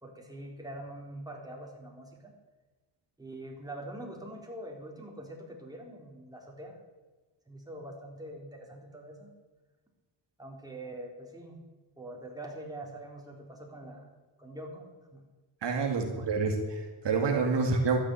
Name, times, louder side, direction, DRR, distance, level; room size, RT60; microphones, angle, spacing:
voice 1, 0.0-2.3 3.2-6.8 7.5-9.3 10.4-11.6 12.0-14.1 14.4-15.2 16.0-16.2, right 1 dB, 10° right, -1 dB, 3.9 m, -44 dB
voice 2, 15.6-18.0, right 4 dB, 65° right, 3 dB, 2.2 m, -28 dB
13.0 x 9.8 x 8.5 m, 1.3 s
cardioid pair, 95°, 46 cm